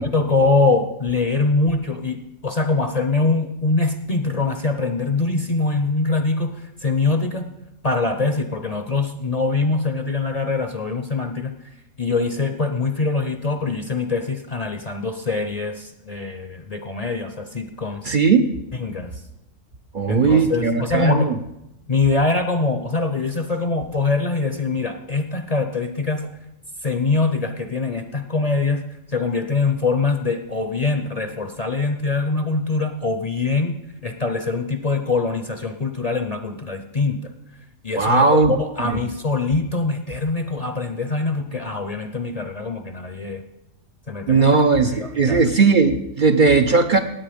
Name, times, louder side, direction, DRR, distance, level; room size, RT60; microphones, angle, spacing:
voice 1, 0.0-7.5 7.8-11.5 12.0-18.1 18.8-19.2 20.1-21.3 21.9-26.3 26.8-28.9 29.1-33.7 34.0-37.3 37.8-43.4 44.1-44.6 44.9-45.4, left 3 dB, 35° left, 7 dB, 0.7 m, -23 dB
voice 2, 18.0-18.5 19.9-21.4 38.0-38.5 38.8-39.0 44.3-47.0, right 4 dB, 50° right, 6 dB, 0.7 m, -17 dB
18.0 x 8.2 x 5.1 m, 0.91 s
omnidirectional pair, 1.3 m